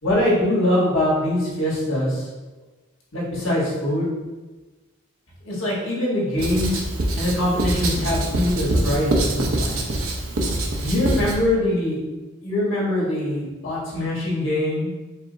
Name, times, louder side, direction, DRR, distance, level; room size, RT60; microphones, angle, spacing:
voice 1, 0.0-2.3 3.1-4.1 5.4-6.9 7.1-10.0 10.8-12.0 12.4-14.9, left 1 dB, 75° left, -6 dB, 1.5 m, -23 dB
Writing, 6.4-11.4, right 1 dB, 90° right, 0.6 m, -24 dB
4.7 x 2.1 x 3.9 m, 1.2 s
head